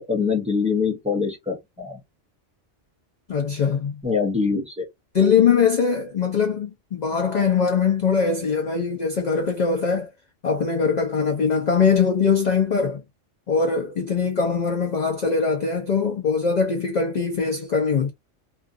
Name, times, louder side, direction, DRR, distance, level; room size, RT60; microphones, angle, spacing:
voice 1, 0.0-2.0 4.0-4.9, left 5 dB, 10° right, 0.5 m, -24 dB
voice 2, 3.3-4.0 4.5-4.6 5.1-10.1 10.4-13.0 13.5-18.1, left 5 dB, 55° left, 0.5 m, -22 dB
2.5 x 2.3 x 2.4 m
omnidirectional pair, 1.2 m